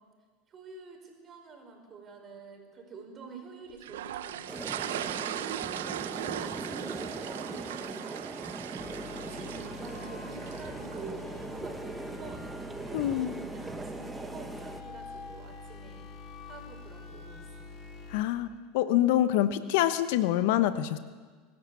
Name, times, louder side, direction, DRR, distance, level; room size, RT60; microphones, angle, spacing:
voice 1, 0.5-8.6 9.1-16.1 16.5-17.7, right 4 dB, 35° right, 4 dB, 5.4 m, -48 dB
sound 1, 3.8-11.1, right 11 dB, 80° right, 0.9 m, -38 dB
sound 2, 4.5-14.8, right 3 dB, 15° right, 1.6 m, -40 dB
sound 3, 8.8-18.2, left 4 dB, 45° left, 2.9 m, -46 dB
voice 2, 12.9-13.3 18.1-18.5 18.7-21.0, left 12 dB, 70° left, 12 dB, 1.0 m, -25 dB
23.0 x 13.5 x 8.5 m, 1.5 s
hypercardioid pair, 95°, 0 cm